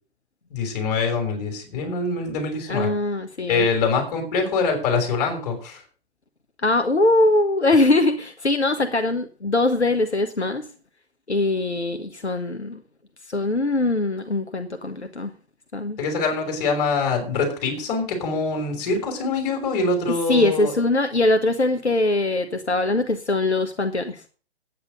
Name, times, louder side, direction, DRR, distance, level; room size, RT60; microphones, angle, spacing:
voice 1, 0.5-2.9 3.5-5.8 16.0-20.7, left 4 dB, 35° left, 4 dB, 5.8 m, -24 dB
voice 2, 2.7-3.7 6.6-10.7 11.3-12.8 13.3-15.3 15.7-16.0 20.3-24.2, left 2 dB, 80° left, 8 dB, 1.3 m, -22 dB
9.8 x 9.7 x 6.6 m, 0.39 s
figure-of-eight pair, 120°, 33 cm